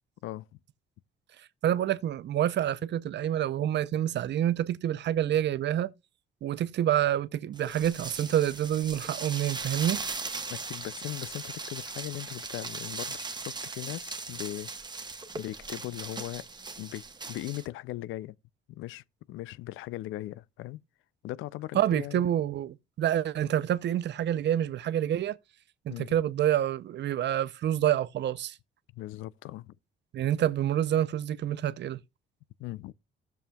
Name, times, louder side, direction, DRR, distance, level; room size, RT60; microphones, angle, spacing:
voice 1, 1.6-5.9 6.4-10.0 21.7-25.4 25.9-28.6 30.1-32.0, right 11 dB, 60° right, 0.6 m, -27 dB
sound 1, 7.6-17.7, right 3 dB, 20° right, 1.1 m, -39 dB
voice 2, 10.5-14.7 15.4-16.5 16.8-18.4 18.7-20.8 21.2-22.2 25.9-26.1 28.9-29.8 32.6-32.9, left 16 dB, 85° left, 0.4 m, -39 dB
15.0 x 7.1 x 2.3 m
cardioid pair, 90°, 20 cm